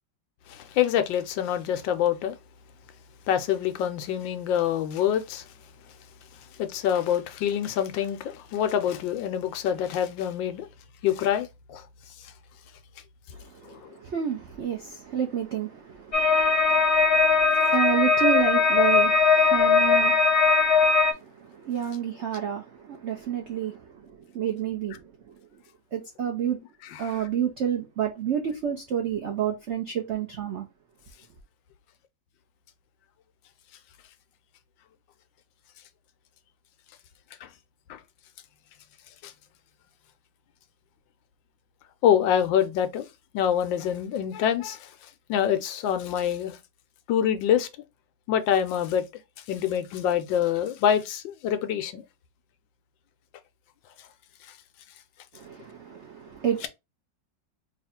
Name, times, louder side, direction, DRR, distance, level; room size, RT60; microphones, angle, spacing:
voice 1, 0.5-2.4 3.3-5.4 6.6-10.7 11.0-11.8 13.6-13.9 26.9-27.0 37.4-37.5 37.9-38.0 39.2-39.3 42.0-43.1 43.3-44.9 45.3-46.6 47.1-47.7 48.3-49.1 49.5-52.0, left 9 dB, 80° left, 1.3 m, -25 dB
voice 2, 13.3-25.4 25.9-26.6 27.0-30.7 55.3-56.7, right 9 dB, 85° right, 0.6 m, -30 dB
sound 1, 16.1-21.1, left 4 dB, 50° left, 1.3 m, -20 dB
3.4 x 2.5 x 4.2 m
omnidirectional pair, 2.1 m